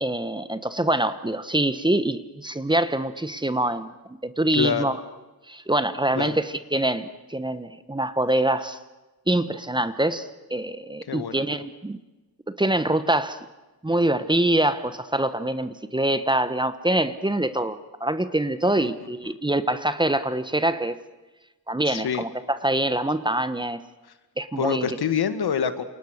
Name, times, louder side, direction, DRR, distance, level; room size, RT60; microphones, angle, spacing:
voice 1, 0.0-5.0 5.5-8.8 9.3-12.0 12.6-13.4 13.8-20.9 21.7-23.8 24.4-24.9, right 1 dB, 10° right, 12 dB, 1.1 m, -25 dB
voice 2, 4.5-4.9 6.2-6.4 11.1-11.4 18.8-18.9 19.2-19.3 21.8-22.3 24.0-24.1 24.6-25.8, left 7 dB, 75° left, 11 dB, 2.0 m, -26 dB
29.0 x 28.0 x 6.6 m, 1.1 s
wide cardioid pair, 135°, 39 cm